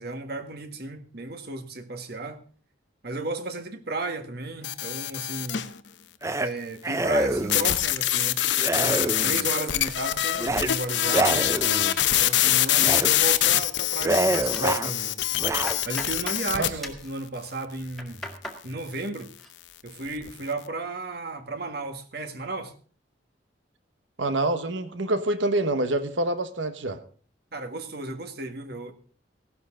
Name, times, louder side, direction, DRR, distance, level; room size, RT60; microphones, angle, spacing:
voice 1, 0.0-2.4 3.0-5.7 6.4-8.4 8.7-11.5 12.2-15.2 15.8-18.2 18.6-19.3 19.8-22.7 27.5-28.9, right 2 dB, 55° right, 1.7 m, -34 dB
sound 1, 4.6-5.7 7.5-16.7, left 12 dB, 75° left, 0.8 m, -24 dB
sound 2, 6.2-6.5 6.8-7.7 8.6-9.5 10.4-10.7 11.1-12.0 12.8-13.1 13.5-13.6 14.0-14.9 15.4-15.8, right 2 dB, 15° right, 0.6 m, -26 dB
sound 3, 14.3-14.8 15.2-16.5 16.8-17.1 17.7-18.6 19.0-19.5 19.9-20.3, left 1 dB, ahead, 1.8 m, -40 dB
voice 2, 24.2-27.0, right 2 dB, 85° right, 1.2 m, -26 dB
17.0 x 12.0 x 3.8 m
head